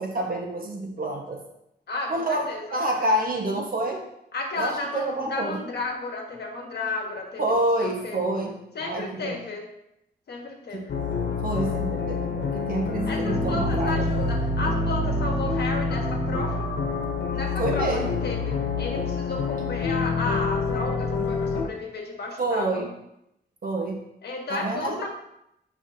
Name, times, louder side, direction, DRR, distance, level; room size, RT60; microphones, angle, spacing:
voice 1, 0.0-1.4 2.1-2.4 2.7-4.0 4.5-5.6 7.4-8.5 8.8-9.4 10.7-10.9 11.4-14.1 17.6-18.2 22.4-22.9 23.6-24.0 24.5-25.0, right 1 dB, 50° right, 0 dB, 1.4 m, -27 dB
voice 2, 1.9-2.8 4.3-7.4 7.8-8.2 8.7-9.7 10.3-11.0 13.1-16.7 17.3-22.8 24.2-25.1, left 3 dB, 65° left, 1 dB, 1.4 m, -33 dB
sound 1, 10.9-21.7, left 3 dB, 85° left, 1.1 m, -27 dB
7.9 x 5.9 x 2.8 m, 0.82 s
wide cardioid pair, 120°, 18 cm